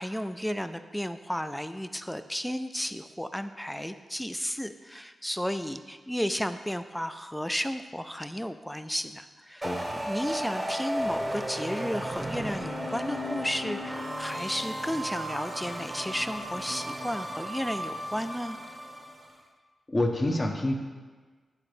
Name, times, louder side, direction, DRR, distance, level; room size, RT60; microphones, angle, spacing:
voice 1, 0.0-9.7 10.1-18.6, equal, 5° left, 10 dB, 0.4 m, -33 dB
voice 2, 9.6-10.1 19.9-20.7, left 1 dB, 30° left, 2 dB, 0.9 m, -27 dB
sound 1, 9.6-19.3, equal, 20° right, 0.8 m, -34 dB
9.6 x 3.9 x 3.3 m, 1.4 s
cardioid pair, 60°, 0 cm